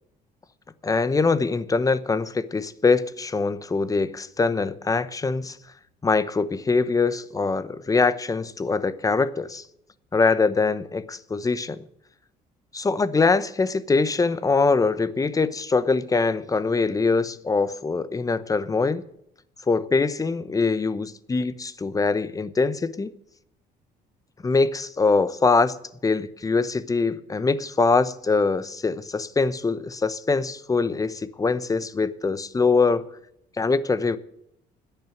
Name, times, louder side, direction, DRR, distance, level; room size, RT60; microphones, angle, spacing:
voice 1, 0.8-5.6 6.0-9.6 10.1-11.8 12.7-19.0 19.7-23.1 24.4-25.8 26.0-33.0 33.6-34.2, left 4 dB, 20° left, 0.8 m, -23 dB
10.5 x 9.1 x 7.7 m
cardioid pair, 110°, 17 cm